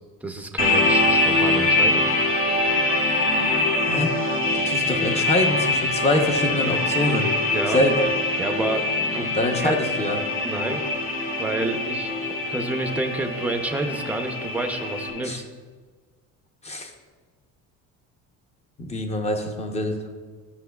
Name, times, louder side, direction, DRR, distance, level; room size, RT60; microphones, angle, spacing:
voice 1, 0.2-2.0 7.5-7.8 8.4-9.8 10.4-10.8 11.4-12.1 12.5-15.4, right 2 dB, 5° right, 5 dB, 0.5 m, -29 dB
sound 1, 0.6-15.1, left 2 dB, 45° left, 1.4 m, -23 dB
voice 2, 4.5-7.3 7.7-8.1 9.4-10.2 15.2-15.4 16.6-16.9 18.8-20.1, left 1 dB, 20° left, 4 dB, 0.8 m, -24 dB
12.0 x 6.2 x 2.3 m, 1.5 s
cardioid pair, 135°, 31 cm